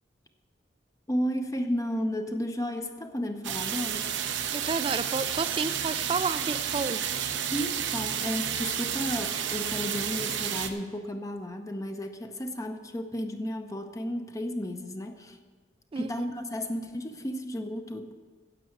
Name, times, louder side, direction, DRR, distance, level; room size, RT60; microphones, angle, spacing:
voice 1, 1.1-4.1 7.5-15.4 16.0-18.1, equal, 20° left, 6 dB, 0.6 m, -33 dB
sound 1, 3.4-10.7, right 8 dB, 85° right, 0.8 m, -31 dB
voice 2, 4.5-7.0 15.9-16.3, right 4 dB, 30° right, 12 dB, 0.3 m, -31 dB
10.0 x 7.6 x 7.9 m, 1.5 s
head